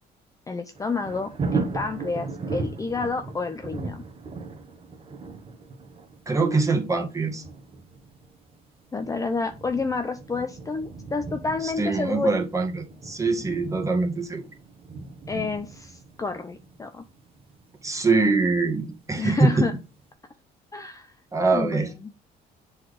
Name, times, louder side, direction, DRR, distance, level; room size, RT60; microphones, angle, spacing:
voice 1, 0.5-4.0 8.9-12.3 15.3-17.0 19.2-19.7 20.7-21.1 21.5-22.1, left 4 dB, 20° left, 0.7 m, -29 dB
Thunder, 0.7-19.5 20.0-20.1, right 4 dB, 35° right, 1.6 m, -37 dB
voice 2, 6.3-7.4 11.6-14.4 17.8-19.7 21.3-21.9, right 3 dB, 20° right, 1.9 m, -23 dB
7.4 x 4.2 x 5.1 m
cardioid pair, 110°, 17 cm